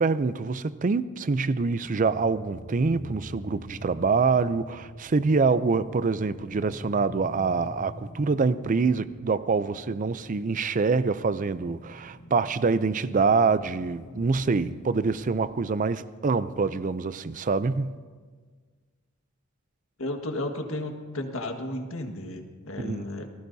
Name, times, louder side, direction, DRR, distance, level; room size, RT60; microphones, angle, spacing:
voice 1, 0.0-18.0 22.8-23.0, right 4 dB, 40° right, 0.5 m, -25 dB
sound 1, 1.7-15.6, left 1 dB, 55° left, 2.6 m, -46 dB
voice 2, 20.0-23.3, left 1 dB, 90° left, 1.7 m, -33 dB
28.0 x 18.5 x 2.7 m
head